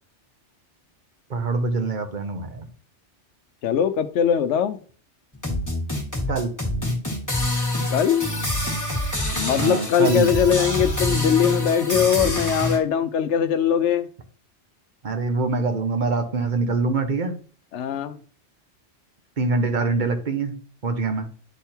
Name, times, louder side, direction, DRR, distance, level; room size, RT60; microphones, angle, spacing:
voice 1, 1.3-2.7 6.3-6.5 9.6-10.3 15.0-17.4 19.4-20.5 20.8-21.3, right 3 dB, 45° right, 7 dB, 1.1 m, -24 dB
voice 2, 3.6-4.8 7.9-8.3 9.4-14.1 17.7-18.2, left 8 dB, 75° left, 9 dB, 0.9 m, -21 dB
sound 1, 5.3-12.8, left 1 dB, 15° left, 1.5 m, -26 dB
10.0 x 3.5 x 4.4 m, 0.43 s
omnidirectional pair, 1.2 m